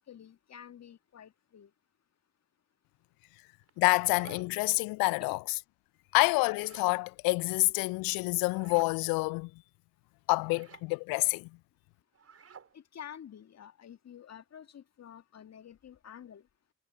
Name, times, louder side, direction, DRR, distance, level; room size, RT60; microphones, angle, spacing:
voice 1, 0.1-1.7 5.2-5.4 12.7-16.5, left 9 dB, 40° left, 2.1 m, -49 dB
sound 1, 3.6-4.7 6.3-6.9 8.5-9.0 10.4-10.9 12.1-12.8, right 7 dB, 35° right, 5.6 m, -53 dB
voice 2, 3.8-5.4 6.1-9.5 10.3-11.5, left 26 dB, 60° left, 0.8 m, -27 dB
figure-of-eight pair, 50°, 41 cm